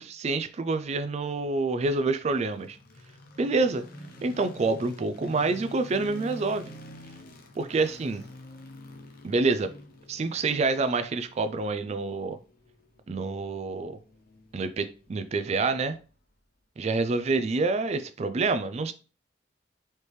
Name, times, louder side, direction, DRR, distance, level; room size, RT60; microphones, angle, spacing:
voice 1, 0.0-2.8 3.4-3.8 4.2-6.7 7.6-8.2 9.2-9.7 10.1-12.4 13.1-14.0 14.5-16.0 16.8-18.9, right 3 dB, 35° right, 10 dB, 0.3 m, -27 dB
sound 1, 2.1-16.3, left 1 dB, 55° left, 0.8 m, -48 dB
4.3 x 3.3 x 3.1 m, 0.34 s
head